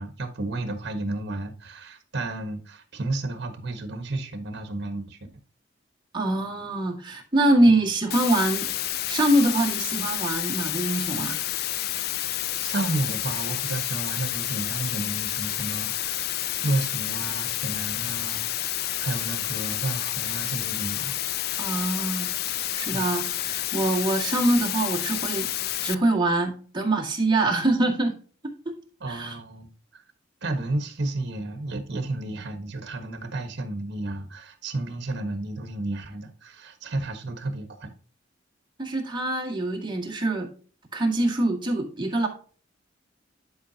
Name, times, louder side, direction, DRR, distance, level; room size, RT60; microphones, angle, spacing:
voice 1, 0.0-5.2 7.7-7.8 12.6-16.4 16.6-21.2 22.9-23.1 29.0-30.0 30.4-37.9, right 2 dB, 60° right, 1.4 m, -32 dB
voice 2, 6.1-8.7 9.1-11.4 21.6-22.3 22.7-25.5 25.8-28.1 28.7-28.8 29.1-29.4 38.8-40.5 40.9-42.3, right 1 dB, 25° right, 2.0 m, -24 dB
sound 1, 8.1-26.0, left 14 dB, 55° left, 0.4 m, -29 dB
11.0 x 4.9 x 2.8 m
head